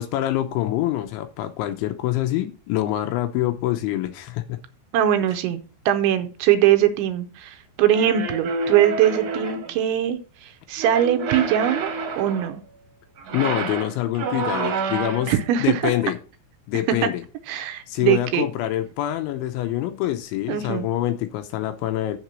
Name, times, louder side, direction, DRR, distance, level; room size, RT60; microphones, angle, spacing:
voice 1, 0.0-4.4 13.3-16.2 16.7-17.2 17.9-22.2, left 13 dB, 80° left, 8 dB, 3.0 m, -25 dB
voice 2, 4.9-11.9 12.2-12.6 15.3-15.7 17.5-18.5 20.5-20.9, right 11 dB, 80° right, 9 dB, 2.9 m, -21 dB
sound 1, 7.9-9.8 10.8-12.6 13.2-15.4, right 4 dB, 60° right, 2.1 m, -28 dB
7.5 x 6.1 x 6.1 m, 0.36 s
omnidirectional pair, 5.7 m